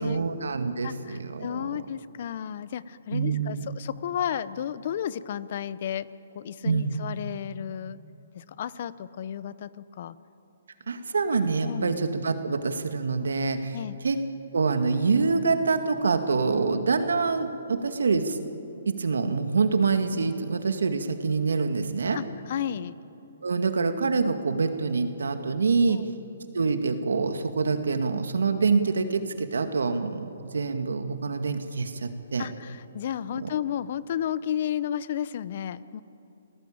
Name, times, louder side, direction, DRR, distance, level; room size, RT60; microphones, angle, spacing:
voice 1, 0.0-1.7 3.1-3.7 6.6-7.0 10.9-13.8 14.0-14.2 14.5-18.4 18.9-22.2 23.4-26.0 26.5-32.4 33.4-33.5, right 4 dB, 85° right, 8 dB, 2.0 m, -26 dB
voice 2, 0.8-6.1 6.3-8.0 8.3-10.2 11.6-12.0 13.7-14.0 22.1-23.0 25.9-26.0 32.4-36.0, left 9 dB, 50° left, 17 dB, 0.8 m, -33 dB
29.0 x 18.5 x 8.7 m, 2.9 s
hypercardioid pair, 155°, 0 cm